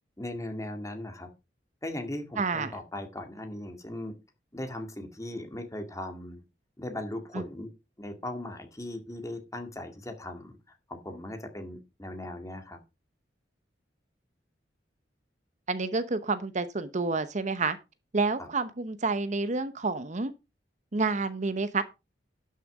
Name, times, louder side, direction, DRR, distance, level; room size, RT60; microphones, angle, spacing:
voice 1, 0.2-1.3 1.8-4.1 4.5-6.4 6.8-7.7 8.0-10.6 10.9-12.8 18.4-18.5, left 1 dB, 20° left, 2.0 m, -38 dB
voice 2, 2.4-2.8 7.3-7.4 15.7-17.8 18.1-20.3 20.9-21.8, right 3 dB, 40° right, 0.9 m, -29 dB
12.0 x 6.6 x 4.8 m
head